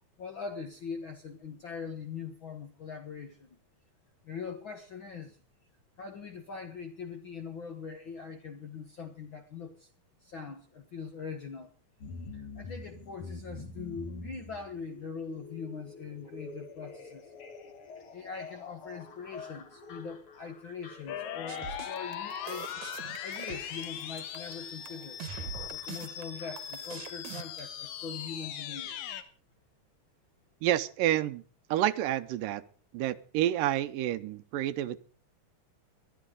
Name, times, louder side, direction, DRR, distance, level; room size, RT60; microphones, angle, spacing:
voice 1, 0.2-3.6 4.2-5.4 6.0-9.9 10.2-11.7 12.3-17.3 18.1-22.7 23.2-25.2 25.7-29.1, left 5 dB, 65° left, 5 dB, 1.2 m, -42 dB
sound 1, 12.0-28.1 28.4-28.5, left 3 dB, 45° left, 2.4 m, -48 dB
sound 2, 21.1-29.2, left 9 dB, 80° left, 2.9 m, -40 dB
sound 3, 21.5-27.6, right 9 dB, 65° right, 2.2 m, -43 dB
voice 2, 30.6-31.4 31.7-32.6 32.9-35.0, right 13 dB, 85° right, 13 dB, 2.4 m, -29 dB
21.0 x 12.5 x 3.8 m, 0.41 s
omnidirectional pair, 3.8 m